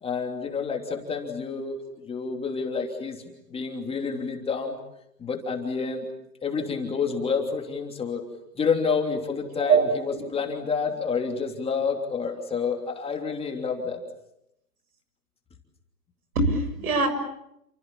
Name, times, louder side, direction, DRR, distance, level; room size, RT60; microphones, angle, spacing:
voice 1, 0.0-3.2 3.5-4.8 5.2-6.0 6.4-8.2 8.6-14.0, left 5 dB, 10° left, 2 dB, 3.1 m, -29 dB
voice 2, 10.1-10.5 16.4-17.1, right 4 dB, 60° right, 9 dB, 7.1 m, -23 dB
29.5 x 27.0 x 7.3 m, 0.81 s
hypercardioid pair, 125°, 49 cm